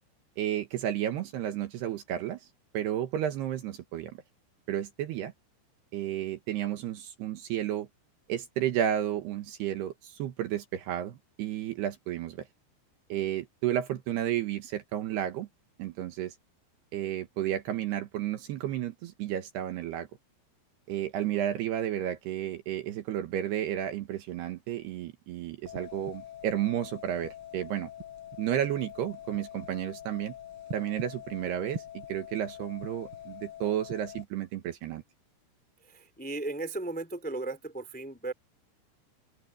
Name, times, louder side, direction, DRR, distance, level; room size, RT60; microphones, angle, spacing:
voice 1, 0.4-2.4 2.7-4.2 4.7-5.3 5.9-7.9 8.3-12.4 13.1-15.5 15.8-16.3 16.9-20.1 20.9-27.9 28.4-30.3 30.7-35.0, right 11 dB, 70° right, 3.0 m, -32 dB
sound 1, 25.7-34.2, left 4 dB, 25° right, 4.8 m, -44 dB
voice 2, 35.9-38.3, right 2 dB, 5° left, 1.9 m, -36 dB
omnidirectional pair, 5.4 m